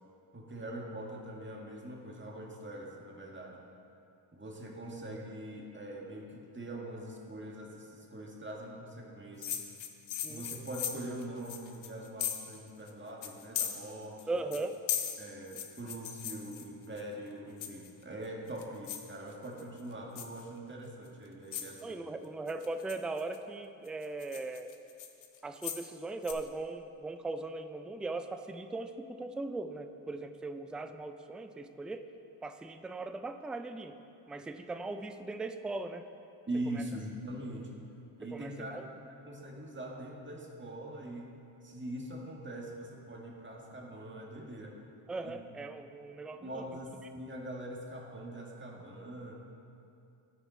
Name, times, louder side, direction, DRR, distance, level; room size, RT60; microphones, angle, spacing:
voice 1, 0.3-3.6 4.3-9.6 10.3-14.2 15.2-22.0 36.4-37.8 38.2-41.4 41.6-44.8 45.2-45.4 46.3-49.4, right 1 dB, 25° right, -2 dB, 1.8 m, -43 dB
sound 1, 9.4-12.6 12.9-13.0 13.2-14.2 14.5-17.0 17.6-18.0 18.5-19.1 19.5-19.8 20.2-20.4 21.1-21.2 21.5-21.8 22.5-23.4 23.9-25.9 26.2-26.3, left 9 dB, 70° left, 0.9 m, -38 dB
voice 2, 14.3-14.8 21.8-24.7 25.4-32.1 32.4-34.0 34.3-36.0 36.7-36.9 38.2-38.9 45.1-46.7, right 3 dB, ahead, 8 dB, 0.3 m, -39 dB
12.0 x 5.0 x 4.3 m, 2.6 s
supercardioid pair, 45°, 49 cm